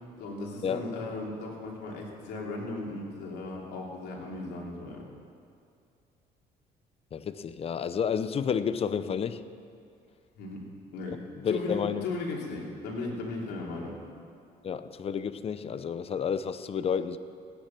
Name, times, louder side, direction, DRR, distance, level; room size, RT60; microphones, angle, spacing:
voice 1, 0.2-5.0 10.4-10.6 10.9-11.2 11.4-13.9, left 2 dB, 80° left, -2 dB, 3.1 m, -36 dB
voice 2, 7.1-9.4 11.1-12.1 14.6-17.2, left 7 dB, 35° left, 13 dB, 0.6 m, -31 dB
17.0 x 9.9 x 5.9 m, 2.4 s
cardioid pair, 110°, 17 cm